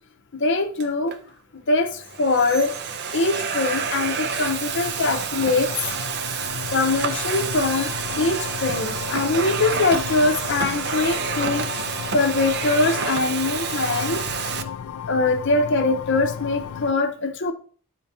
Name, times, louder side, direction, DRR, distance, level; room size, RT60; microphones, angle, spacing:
voice 1, 0.4-1.2 1.7-2.7 3.1-5.7 6.7-7.9 8.2-11.6 12.1-14.2 15.1-17.5, left 3 dB, 55° left, 7 dB, 0.7 m, -22 dB
Domestic sounds home sounds, 0.8-1.2 1.9-14.6, right 6 dB, 50° right, 0.6 m, -29 dB
sound 1, 2.6-16.9, left 7 dB, 70° left, 0.3 m, -35 dB
10.0 x 4.4 x 2.7 m, 0.44 s
head